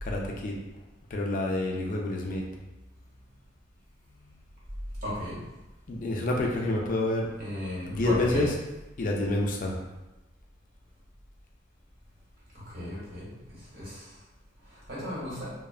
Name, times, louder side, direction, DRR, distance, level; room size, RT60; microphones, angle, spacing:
voice 1, 0.0-0.6 1.1-2.4 4.1-4.2 5.9-7.3 7.9-8.5 9.0-9.7, left 2 dB, 45° left, -1 dB, 0.4 m, -28 dB
voice 2, 5.0-5.4 7.4-8.5 12.7-14.1 14.9-15.5, left 1 dB, 55° right, -8 dB, 1.2 m, -35 dB
3.1 x 2.0 x 2.4 m, 1.0 s
head